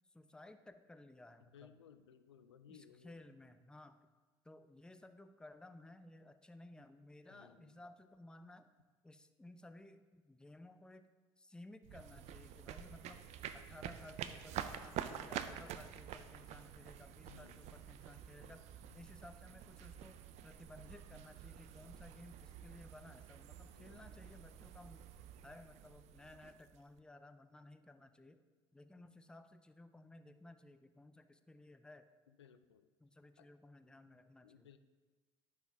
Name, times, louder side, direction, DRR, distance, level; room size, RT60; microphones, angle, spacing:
voice 1, 0.1-1.7 2.7-4.0 4.4-8.7 9.0-13.3 13.5-18.7 18.9-20.2 20.4-25.1 25.4-28.4 28.7-32.1 33.0-34.7, left 2 dB, 5° left, 10 dB, 0.5 m, -57 dB
voice 2, 1.5-3.2 7.3-7.8 17.3-17.6 23.8-24.3 32.4-32.9 33.4-33.5 34.4-34.8, left 8 dB, 85° left, 10 dB, 0.5 m, -61 dB
sound 1, 11.8-27.0, right 9 dB, 55° right, 0.5 m, -48 dB
10.5 x 5.6 x 3.5 m, 1.3 s
hypercardioid pair, 65°, 14 cm